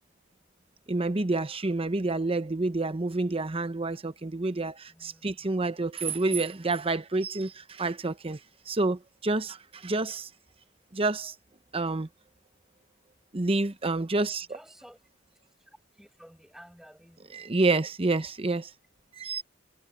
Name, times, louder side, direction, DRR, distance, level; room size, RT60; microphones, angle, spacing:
voice 1, 0.9-8.4 8.7-10.3 10.9-11.3 11.7-12.1 13.3-14.6 17.3-18.7 19.2-19.4, right 2 dB, 30° right, 0.9 m, -28 dB
voice 2, 4.9-5.3 14.5-15.0 15.6-15.7 16.0-17.5, equal, ahead, 7.4 m, -52 dB
head